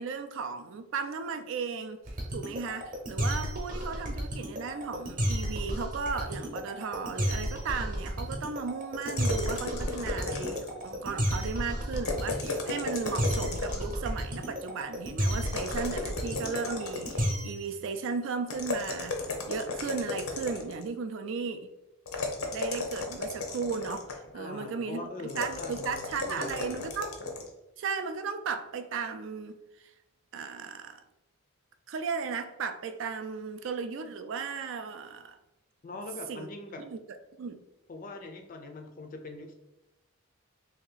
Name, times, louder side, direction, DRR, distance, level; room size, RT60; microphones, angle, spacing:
voice 1, 0.0-2.0 2.3-19.2 19.5-21.7 22.5-27.1 27.8-29.9 30.3-31.0 31.9-35.4 36.3-36.5 36.8-37.0 37.4-37.6, right 5 dB, 60° right, 0.3 m, -35 dB
sound 1, 2.1-17.7, equal, 40° right, 0.8 m, -32 dB
sound 2, 9.0-10.9 11.9-14.0 15.4-17.4 18.5-20.8 22.1-24.3 25.3-27.5, left 3 dB, 75° left, 0.7 m, -35 dB
voice 2, 24.3-26.9 35.8-36.8 37.9-39.5, left 2 dB, 40° left, 0.4 m, -42 dB
3.0 x 2.8 x 3.9 m
head